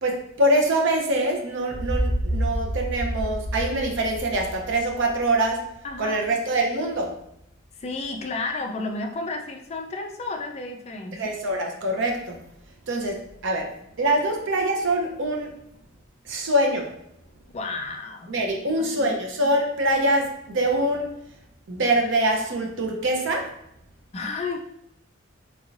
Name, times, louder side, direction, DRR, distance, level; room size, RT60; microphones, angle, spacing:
voice 1, 0.0-5.6 6.0-7.2 11.1-12.4 12.9-15.5 16.3-16.9 18.3-21.1 21.7-23.5, right 1 dB, 65° right, 2 dB, 0.7 m, -24 dB
sound 1, 1.7-5.6, equal, 30° right, 1.0 m, -29 dB
voice 2, 5.8-6.2 7.8-11.3 17.5-18.3 18.6-19.1 24.1-24.6, left 3 dB, 30° left, 3 dB, 0.4 m, -32 dB
3.5 x 3.2 x 2.5 m, 0.77 s
head